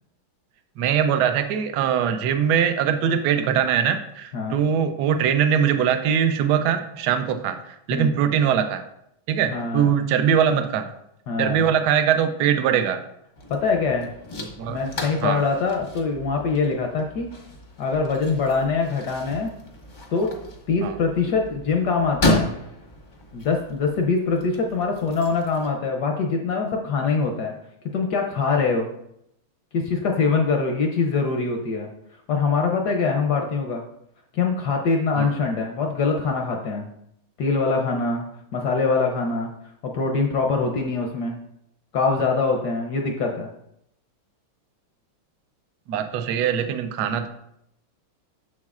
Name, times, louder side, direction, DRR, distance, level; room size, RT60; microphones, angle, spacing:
voice 1, 0.8-8.8 9.3-10.9 11.4-13.0 14.6-14.8 15.2-15.4 20.8-21.0 35.2-35.3 45.9-47.3, right 8 dB, 70° right, 8 dB, 1.0 m, -22 dB
voice 2, 9.5-9.9 11.3-11.6 13.5-14.1 14.7-17.3 17.8-19.5 20.1-20.3 20.7-22.5 23.3-27.5 27.9-28.9 29.7-31.9 32.3-33.8 34.3-36.9 37.4-38.2 38.5-39.5 39.8-41.4 41.9-43.5, left 4 dB, 70° left, 2 dB, 1.0 m, -23 dB
sound 1, 13.4-25.7, left 1 dB, 45° left, 0.6 m, -32 dB
7.2 x 6.3 x 2.4 m, 0.76 s
omnidirectional pair, 2.3 m